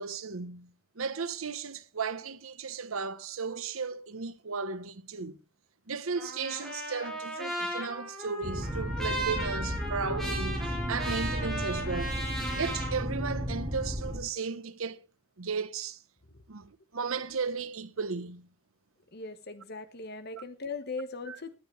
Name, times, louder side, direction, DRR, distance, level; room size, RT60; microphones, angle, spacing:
voice 1, 0.0-5.4 5.9-10.6 10.9-12.2 12.5-15.0 15.4-16.0 16.5-18.5 20.3-20.4 21.3-21.4, right 5 dB, 85° right, 1.0 m, -35 dB
Trumpet, 6.2-12.9, right 1 dB, ahead, 6.0 m, -36 dB
sound 1, 8.4-14.2, equal, 20° right, 2.5 m, -34 dB
voice 2, 19.1-21.5, left 4 dB, 50° left, 1.3 m, -39 dB
18.5 x 10.5 x 3.2 m
head